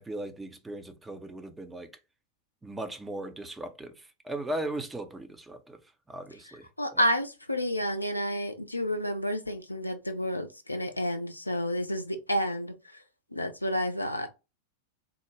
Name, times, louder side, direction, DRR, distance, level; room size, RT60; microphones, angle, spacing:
voice 1, 0.0-1.9 2.6-5.8 6.1-6.7 6.9-7.0, right 1 dB, 10° right, 0.6 m, -38 dB
voice 2, 6.8-12.7 13.3-14.3, equal, 85° left, 0.5 m, -30 dB
3.7 x 2.1 x 3.1 m
figure-of-eight pair, 90°, 0 cm